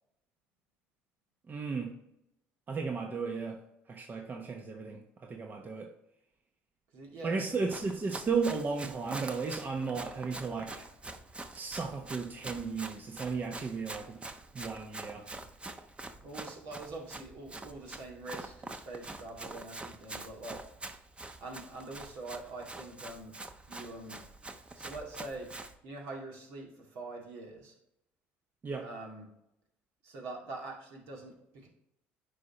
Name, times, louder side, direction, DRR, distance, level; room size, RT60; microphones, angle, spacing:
voice 1, 1.5-1.9 2.7-3.6 3.9-5.9 7.2-10.8 11.5-14.2 14.5-15.3 28.6-28.8, right 4 dB, 35° right, 3 dB, 1.1 m, -34 dB
voice 2, 6.9-7.5 16.2-20.6 21.4-23.4 23.7-24.2 24.7-25.5 25.8-27.7 28.8-29.3 30.0-31.7, right 2 dB, 70° right, -1 dB, 2.3 m, -44 dB
Run, 7.5-25.8, right 2 dB, 20° right, 0.8 m, -45 dB
9.2 x 5.1 x 3.0 m, 0.80 s
hypercardioid pair, 70°, 5 cm